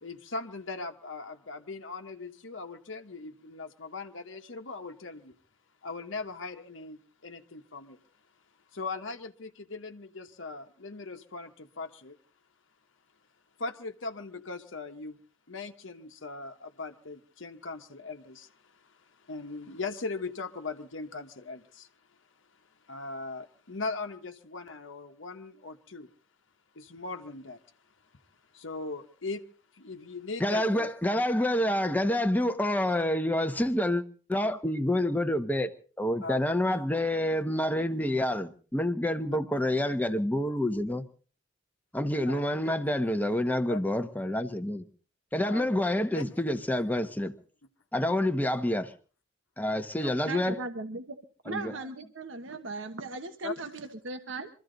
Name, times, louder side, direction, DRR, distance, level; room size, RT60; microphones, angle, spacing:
voice 1, 0.0-5.3 5.8-8.0 8.7-12.2 13.6-15.2 15.5-21.9 22.9-26.1 26.7-27.6 28.5-29.4 29.7-30.9 36.2-36.4 42.3-42.7 43.7-43.8 45.5-45.7 46.1-46.2 50.0-50.1 53.4-53.5, left 3 dB, 75° left, 1.2 m, -39 dB
voice 2, 30.4-34.0 34.3-35.7 36.0-41.0 41.9-44.8 45.3-47.3 47.9-48.9 49.6-50.6 51.5-51.7, left 1 dB, 10° left, 1.0 m, -28 dB
voice 3, 50.2-51.2 51.4-54.5, right 3 dB, 70° right, 1.3 m, -38 dB
24.5 x 14.5 x 4.0 m
head